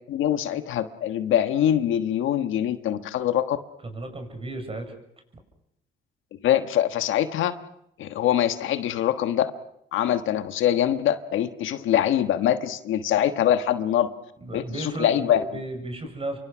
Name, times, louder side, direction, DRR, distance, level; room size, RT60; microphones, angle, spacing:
voice 1, 0.1-3.6 6.4-7.6 8.0-9.5 9.9-14.1 14.5-15.4, left 11 dB, 80° left, 9 dB, 1.4 m, -23 dB
voice 2, 3.8-5.0 14.4-16.4, right 2 dB, 30° right, 5 dB, 7.0 m, -34 dB
27.5 x 24.0 x 6.2 m, 0.77 s
cardioid pair, 90°, 20 cm